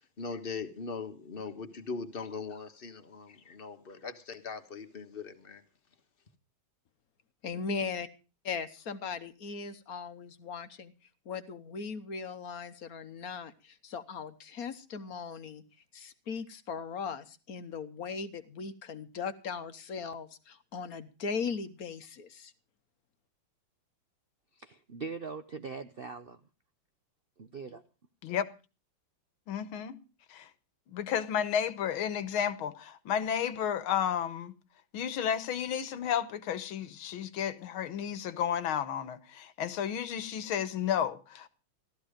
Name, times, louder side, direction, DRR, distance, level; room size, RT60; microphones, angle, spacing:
voice 1, 0.2-5.6, left 4 dB, 30° left, 1.4 m, -40 dB
voice 2, 7.4-8.1 8.4-10.9 11.2-15.6 15.9-22.5, left 5 dB, 55° left, 1.3 m, -38 dB
voice 3, 24.5-26.4 27.4-27.8, right 5 dB, 60° right, 0.5 m, -41 dB
voice 4, 29.5-30.0 30.3-30.5 30.9-34.5 34.9-41.5, left 9 dB, 85° left, 1.9 m, -32 dB
15.5 x 13.5 x 5.0 m
omnidirectional pair, 2.2 m